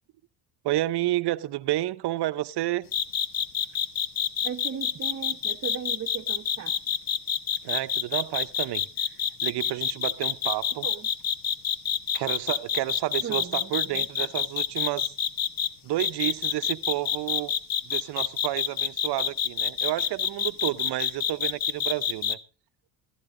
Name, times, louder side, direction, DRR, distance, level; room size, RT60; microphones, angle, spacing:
voice 1, 0.6-2.9 7.6-8.8 9.4-10.9 12.1-15.1 15.8-17.5 17.8-22.4, right 15 dB, 65° right, 0.8 m, -30 dB
sound 1, 2.9-15.7 16.0-22.3, left 9 dB, 50° left, 1.0 m, -27 dB
voice 2, 4.4-6.7 10.8-11.1 13.2-14.3, right 8 dB, 35° right, 0.9 m, -37 dB
14.0 x 13.5 x 3.8 m
cardioid pair, 95°, 43 cm